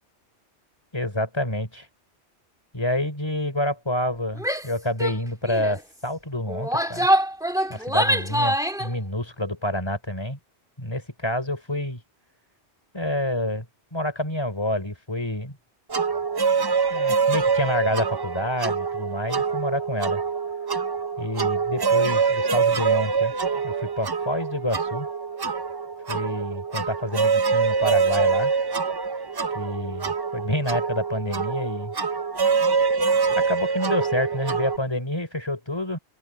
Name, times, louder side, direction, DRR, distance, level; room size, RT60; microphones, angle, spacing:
voice 1, 0.9-1.9 2.7-7.1 7.7-10.4 10.8-12.0 12.9-13.6 13.9-15.6 16.9-20.2 21.2-23.3 23.6-25.1 26.1-28.5 29.5-31.9 33.3-36.0, left 1 dB, 25° left, 4.7 m, -28 dB
Female speech woman speaking / Yell, 4.4-4.7 5.0-5.2 5.5-5.8 6.5-8.9, equal, 5° right, 1.8 m, -24 dB
sound 1, 15.9-34.8, right 5 dB, 35° right, 0.4 m, -25 dB
open air
omnidirectional pair, 1.1 m